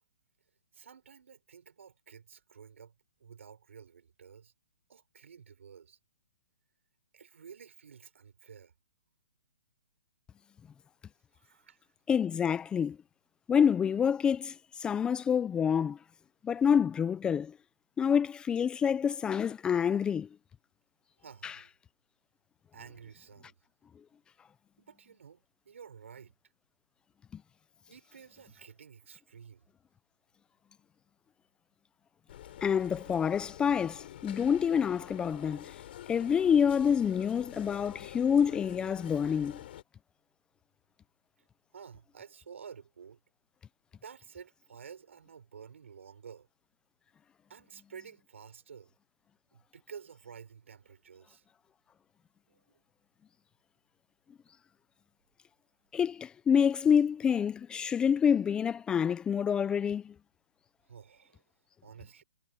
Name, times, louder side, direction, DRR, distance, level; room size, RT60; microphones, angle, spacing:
voice 1, 0.7-2.9 3.2-4.5 4.9-6.0 7.1-8.7 11.3-11.9 21.2-21.7 22.7-23.5 24.8-26.3 27.9-29.7 41.4-41.5 41.7-43.2 43.9-46.5 47.5-48.9 49.5-51.5 52.5-52.8 60.8-61.4 61.8-62.2, right 7 dB, 75° right, 5.2 m, -51 dB
voice 2, 12.1-13.0 13.5-16.0 16.4-17.5 18.0-20.3 21.4-21.5 27.3-27.4 32.6-35.7 36.1-39.6 55.9-60.1, left 7 dB, 10° left, 0.6 m, -27 dB
sound 1, 32.3-39.8, left 12 dB, 50° left, 5.2 m, -47 dB
hypercardioid pair, 145°, 7 cm